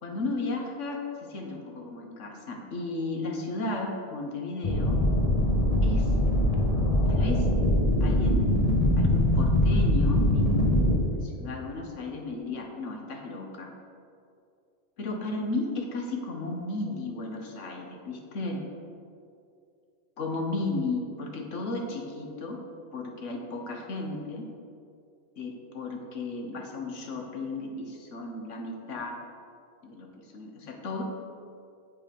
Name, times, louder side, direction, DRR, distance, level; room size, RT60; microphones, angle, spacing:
voice 1, 0.0-5.0 5.8-6.1 7.1-7.5 8.0-8.4 9.0-13.7 15.0-18.6 20.2-22.6 22.9-24.5 25.4-29.2 29.8-31.0, left 2 dB, 70° left, 2 dB, 1.4 m, -34 dB
sound 1, 4.6-11.0, left 1 dB, 35° left, 0.8 m, -23 dB
7.5 x 7.1 x 5.2 m, 2.5 s
omnidirectional pair, 1.3 m